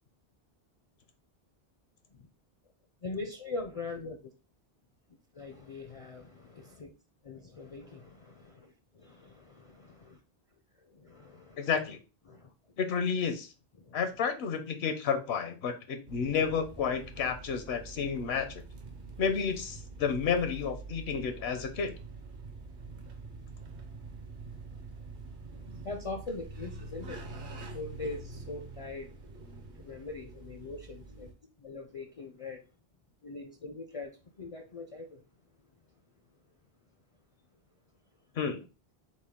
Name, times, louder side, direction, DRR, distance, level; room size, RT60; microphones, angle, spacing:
voice 1, 3.0-4.2 5.3-6.9 7.2-10.2 10.8-11.7 12.3-12.5 13.8-14.0 25.8-27.2 27.7-29.1 29.7-31.3 31.6-32.7 33.2-35.2, left 3 dB, 50° left, 4 dB, 0.4 m, -42 dB
voice 2, 11.6-12.0 12.8-13.5 13.9-18.6 19.2-21.9 38.4-38.6, left 6 dB, 85° left, 7 dB, 0.9 m, -31 dB
sound 1, 16.1-31.3, right 3 dB, 55° right, 0.9 m, -46 dB
6.3 x 2.1 x 3.6 m, 0.32 s
omnidirectional pair, 1.1 m